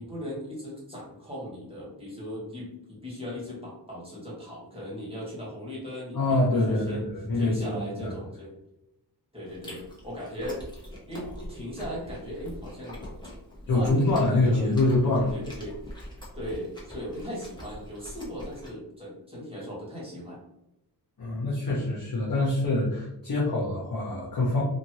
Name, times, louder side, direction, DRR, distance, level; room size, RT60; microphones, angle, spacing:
voice 1, 0.0-7.1 7.3-8.5 9.3-10.6 11.1-13.0 13.7-14.7 15.3-15.8 16.3-20.4, equal, 15° right, -6 dB, 1.4 m, -38 dB
voice 2, 6.1-8.2 13.7-15.3 21.2-24.6, left 2 dB, 55° left, -5 dB, 0.8 m, -25 dB
Chewing mastication, 9.5-18.7, left 1 dB, 10° left, 1.1 m, -43 dB
2.6 x 2.6 x 2.9 m, 0.86 s
wide cardioid pair, 80°, 41 cm